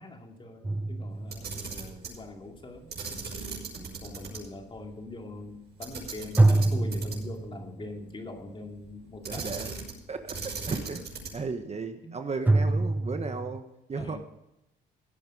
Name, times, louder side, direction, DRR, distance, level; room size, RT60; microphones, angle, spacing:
voice 1, 0.0-1.7 2.1-3.3 4.0-9.7 12.0-12.1 12.7-12.9 13.9-14.2, left 2 dB, 25° left, 3 dB, 2.5 m, -43 dB
sound 1, 0.6-1.8 6.4-7.9 12.5-13.6, right 2 dB, 10° right, 0.4 m, -25 dB
Camera, 1.2-2.2 2.9-4.4 4.7-4.8 5.8-7.4 9.2-10.0 10.3-11.5, right 4 dB, 55° right, 6.1 m, -38 dB
voice 2, 1.6-2.1 3.7-4.1 9.2-9.7 10.1-11.0 11.3-13.6 13.9-14.2, right 4 dB, 35° right, 7 dB, 1.3 m, -35 dB
16.5 x 8.8 x 4.9 m, 0.87 s
cardioid pair, 90°, 20 cm